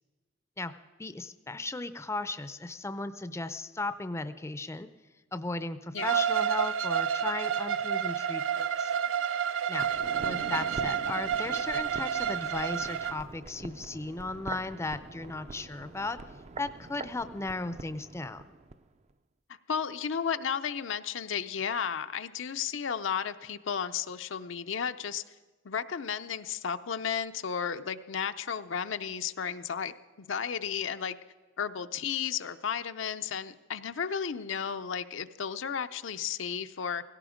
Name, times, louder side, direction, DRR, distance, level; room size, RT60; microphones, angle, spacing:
voice 1, 1.0-4.9 5.3-8.9 9.7-9.9 10.2-16.2 16.6-18.4, left 2 dB, 15° left, 12 dB, 0.5 m, -36 dB
Bowed string instrument, 6.0-13.2, right 8 dB, 90° right, 0.5 m, -30 dB
sound 1, 9.7-18.8 19.1-19.2, right 3 dB, 35° right, 0.5 m, -44 dB
voice 2, 19.7-25.2 25.6-31.2 31.6-37.0, left 7 dB, 80° left, 9 dB, 0.6 m, -33 dB
17.0 x 17.0 x 5.1 m, 1.3 s
head